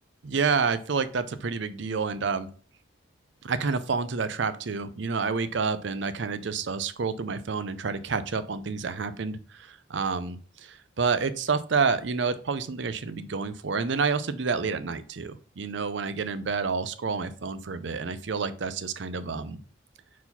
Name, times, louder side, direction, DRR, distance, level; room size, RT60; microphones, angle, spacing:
voice 1, 0.2-2.5 3.4-19.6, right 5 dB, 65° right, 13 dB, 0.5 m, -29 dB
4.7 x 4.1 x 5.5 m, 0.42 s
head